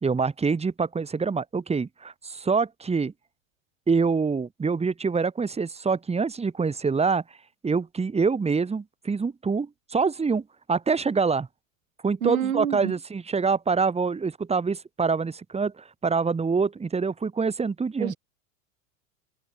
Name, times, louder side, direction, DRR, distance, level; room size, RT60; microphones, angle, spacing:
voice 1, 0.0-3.1 3.9-7.2 7.6-10.4 10.7-11.5 12.0-18.1, right 5 dB, 15° right, 4.6 m, -25 dB
voice 2, 12.2-12.9 18.0-18.2, right 9 dB, 75° right, 4.9 m, -27 dB
figure-of-eight pair, 90°, 40 cm